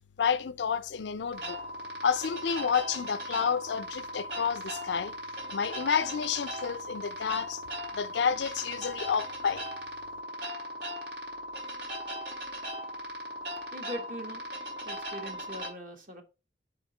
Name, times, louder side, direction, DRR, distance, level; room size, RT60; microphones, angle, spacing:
voice 1, 0.2-1.6 2.0-5.1 5.5-7.6 7.9-9.6, left 6 dB, 80° left, 0.5 m, -30 dB
sound 1, 1.3-15.7, equal, 75° right, 2.5 m, -38 dB
voice 2, 13.7-14.5 14.8-16.2, equal, 45° right, 1.3 m, -41 dB
5.0 x 3.5 x 5.6 m
head